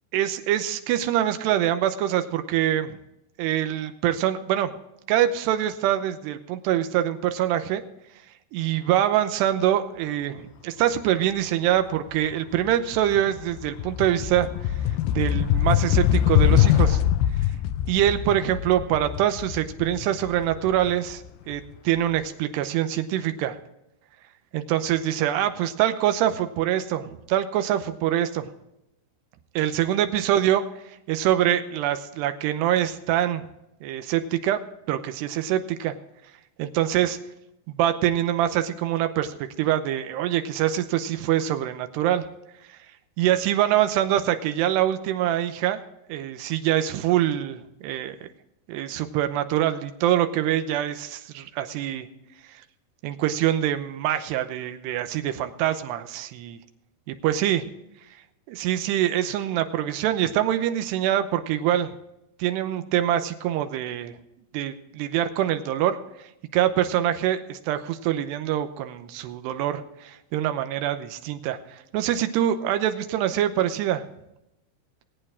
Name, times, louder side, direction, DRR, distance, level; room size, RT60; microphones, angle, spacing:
voice 1, 0.1-3.0 3.4-4.7 5.1-7.8 8.5-14.5 15.1-17.0 17.9-23.6 24.5-28.5 29.6-30.6 31.1-33.4 33.8-34.6 34.9-35.9 36.6-37.2 37.7-42.3 43.2-45.8 46.1-48.3 48.7-52.1 53.0-56.6 57.1-57.7 58.5-62.0 62.4-64.2 64.5-66.0 66.5-74.0, right 11 dB, 85° right, 9 dB, 3.0 m, -24 dB
sound 1, 12.1-12.3 12.7-21.5, left 11 dB, 85° left, 2.1 m, -23 dB
20.0 x 8.8 x 3.6 m, 0.87 s
omnidirectional pair, 4.8 m